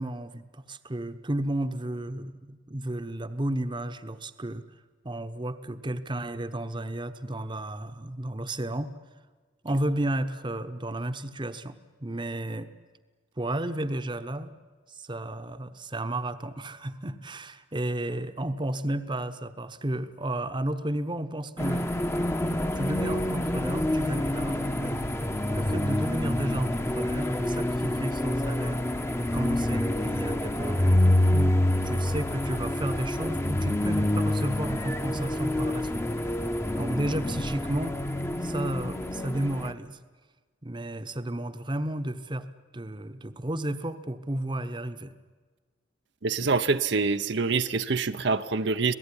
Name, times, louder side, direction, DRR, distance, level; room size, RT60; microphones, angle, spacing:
voice 1, 0.0-4.6 5.0-8.9 9.6-12.7 13.4-14.5 14.9-21.9 22.7-25.0 25.5-28.8 29.3-31.0 31.3-31.6 31.8-36.4 36.8-38.0 38.4-40.0 40.6-42.5 42.7-45.1, right 1 dB, 25° right, 11 dB, 1.0 m, -32 dB
sound 1, 21.6-39.7, left 1 dB, 15° left, 1.0 m, -27 dB
voice 2, 46.2-48.9, right 4 dB, 65° right, 9 dB, 0.8 m, -25 dB
26.5 x 18.0 x 10.0 m, 1.4 s
head